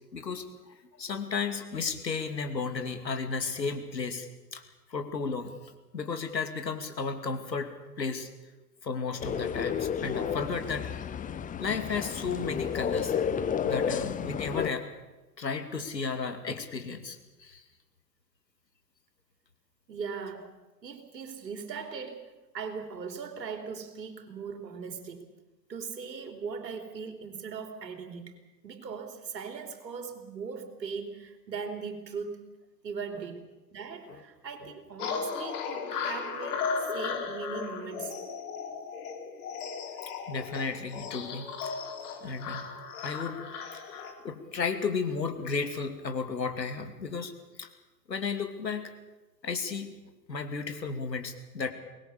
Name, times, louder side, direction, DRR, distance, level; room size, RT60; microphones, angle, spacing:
voice 1, 0.1-4.6 4.9-5.5 5.9-7.7 8.0-8.3 8.8-10.9 11.6-13.1 13.6-14.9 15.4-17.6 34.1-34.2 34.6-34.7 40.3-41.8 42.2-42.7 43.0-43.4 43.7-47.3 47.6-47.7 48.1-48.9 49.4-49.9 50.3-51.7, left 5 dB, 90° left, 8 dB, 2.6 m, -34 dB
sound 1, 9.2-14.7, left 7 dB, 15° left, 0.9 m, -31 dB
voice 2, 19.9-20.5 20.8-22.2 22.5-25.2 25.7-28.3 28.6-32.4 32.8-33.5 33.7-38.2, right 5 dB, 80° right, 6 dB, 3.5 m, -39 dB
sound 2, 35.0-44.1, left 6 dB, 60° left, 4.0 m, -36 dB
23.0 x 20.0 x 6.9 m, 1.1 s
hypercardioid pair, 105°, 49 cm